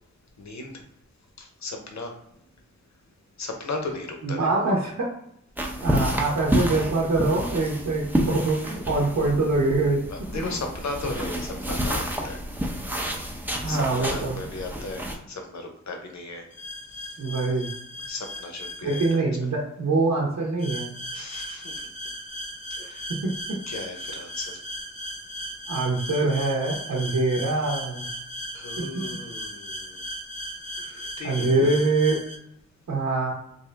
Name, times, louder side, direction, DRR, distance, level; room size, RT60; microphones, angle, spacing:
voice 1, 0.4-0.8 1.4-2.1 3.4-4.6 10.1-12.4 13.2-13.3 13.7-16.5 17.0-17.1 18.1-19.2 21.1-21.7 22.7-23.0 23.7-24.6 28.5-30.0 31.2-31.8, left 3 dB, 70° left, 3 dB, 0.8 m, -36 dB
voice 2, 4.2-5.1 5.8-10.0 13.6-14.4 17.2-17.7 18.8-20.9 23.2-23.3 25.7-28.0 28.8-28.9 30.8-32.2 32.9-33.3, right 3 dB, 85° right, -4 dB, 0.9 m, -24 dB
sound 1, 5.6-15.2, equal, 5° right, 0.6 m, -29 dB
sound 2, 16.5-19.2 20.6-32.4, equal, 25° left, 0.7 m, -37 dB
3.6 x 2.6 x 3.3 m, 0.75 s
wide cardioid pair, 105°, 29 cm